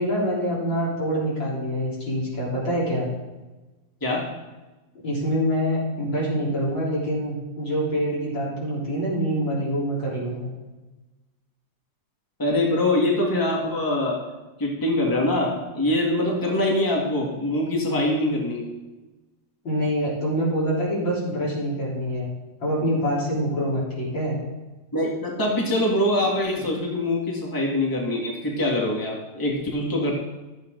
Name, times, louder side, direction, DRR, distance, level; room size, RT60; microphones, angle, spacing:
voice 1, 0.0-3.1 5.0-10.5 19.6-22.3 22.6-24.4, equal, 75° left, -6 dB, 4.7 m, -25 dB
voice 2, 12.4-14.2 14.6-18.7 24.9-30.1, left 1 dB, 10° left, -2 dB, 1.9 m, -24 dB
13.5 x 8.6 x 3.9 m, 1.1 s
omnidirectional pair, 2.0 m